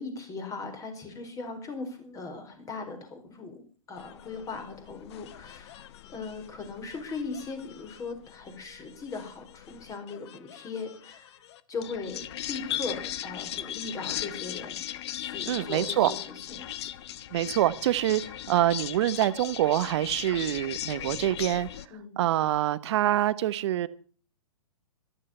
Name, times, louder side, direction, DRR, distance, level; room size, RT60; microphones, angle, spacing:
voice 1, 0.0-3.6 3.9-11.4 11.7-14.8 15.2-16.6 21.9-22.2, left 4 dB, 20° left, 4.7 m, -39 dB
sound 1, 4.0-21.9, left 12 dB, 50° left, 1.1 m, -39 dB
voice 2, 15.5-16.1 17.3-21.7 22.2-23.9, right 13 dB, 55° right, 1.1 m, -25 dB
14.5 x 13.5 x 5.6 m
hypercardioid pair, 120°, 18 cm